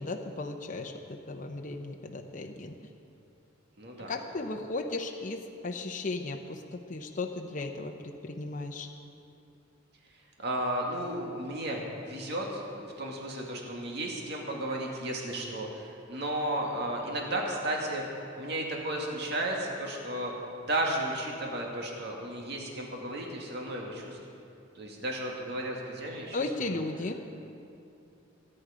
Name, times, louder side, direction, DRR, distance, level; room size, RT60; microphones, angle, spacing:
voice 1, 0.0-2.7 4.1-8.9 26.3-27.2, left 3 dB, 45° left, 3 dB, 0.8 m, -36 dB
voice 2, 3.8-4.1 10.4-20.3 20.6-24.2 24.8-26.9, right 1 dB, 60° right, -1 dB, 2.1 m, -34 dB
23.5 x 9.8 x 5.1 m, 2.6 s
head